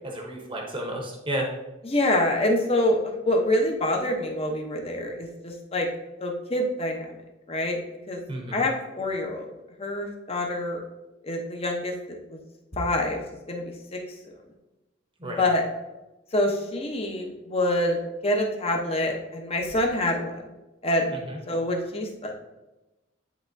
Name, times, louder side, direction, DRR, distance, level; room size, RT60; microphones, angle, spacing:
voice 1, 0.0-1.5 8.3-8.6 15.2-15.4 21.1-21.4, right 1 dB, 25° right, 0 dB, 0.9 m, -32 dB
voice 2, 1.8-5.9 6.2-7.2 7.5-7.8 8.1-8.2 8.5-9.5 9.8-10.8 11.2-12.4 12.7-13.2 13.5-13.6 13.9-14.0 15.2-15.6 16.3-20.4 20.8-22.4, left 1 dB, 30° left, 1 dB, 0.9 m, -26 dB
10.0 x 3.6 x 2.7 m, 1.0 s
head